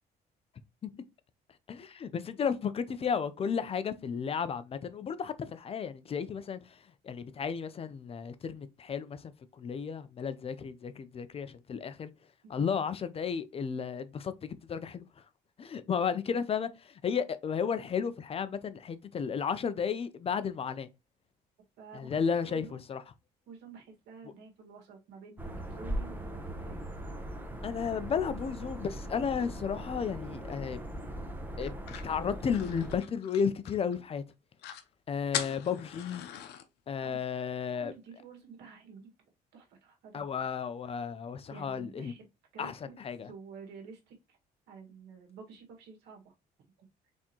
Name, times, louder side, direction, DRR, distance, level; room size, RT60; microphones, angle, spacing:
voice 1, 1.7-12.1 12.5-15.1 15.6-20.9 21.9-23.0 27.6-30.8 31.6-34.2 35.1-36.2 36.9-37.9 40.1-42.1 42.6-43.3, left 6 dB, 35° left, 0.5 m, -33 dB
voice 2, 21.8-22.8 23.5-26.8 31.0-31.1 37.0-37.2 37.7-39.1 39.5-40.2 41.5-42.3 42.5-44.4 44.7-46.3, right 5 dB, 85° right, 1.8 m, -50 dB
sound 1, 25.4-33.0, right 1 dB, 10° right, 1.0 m, -40 dB
sound 2, 31.6-34.0 34.3-34.4 34.6-34.9 35.3-36.6, left 10 dB, 75° left, 0.7 m, -40 dB
4.1 x 3.6 x 2.9 m
cardioid pair, 110°, 17 cm